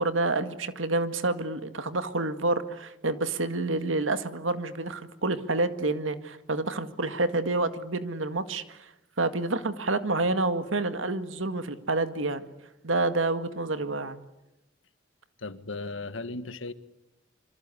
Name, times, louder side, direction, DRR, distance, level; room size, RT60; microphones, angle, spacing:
voice 1, 0.0-8.9 9.2-12.5 12.8-14.2, right 2 dB, 85° right, 10 dB, 2.0 m, -28 dB
voice 2, 15.4-16.7, left 3 dB, 85° left, 12 dB, 1.7 m, -36 dB
26.5 x 25.0 x 8.4 m, 0.92 s
head